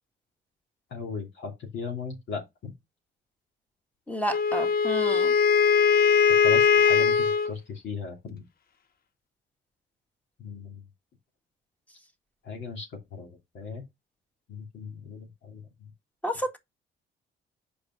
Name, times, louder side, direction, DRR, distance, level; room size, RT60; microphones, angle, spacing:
voice 1, 0.9-2.7 6.4-8.4 10.4-10.8 12.4-12.9 13.1-13.8 14.5-15.6, left 4 dB, 65° left, 2.8 m, -37 dB
voice 2, 4.1-5.3 16.2-16.6, equal, 5° left, 1.8 m, -30 dB
Wind instrument woodwind instrument, 4.3-7.5, left 6 dB, 50° left, 0.9 m, -21 dB
5.1 x 5.1 x 6.1 m
cardioid pair, 90°, 20 cm